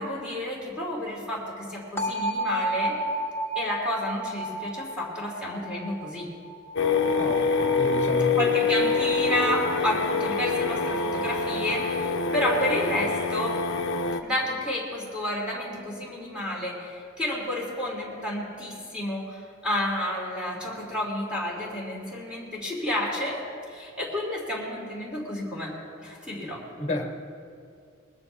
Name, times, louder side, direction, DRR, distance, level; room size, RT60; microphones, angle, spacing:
voice 1, 0.0-2.9 3.5-6.3 8.4-13.6 14.2-23.4 23.7-26.6, left 1 dB, 5° right, -4 dB, 3.1 m, -30 dB
sound 1, 2.0-7.8, right 1 dB, 10° left, 1.5 m, -32 dB
sound 2, 6.8-14.2, left 4 dB, 60° left, 0.8 m, -25 dB
voice 2, 7.2-8.5 26.8-27.1, left 1 dB, 30° left, 2 dB, 1.5 m, -31 dB
21.0 x 13.5 x 3.5 m, 2.3 s
head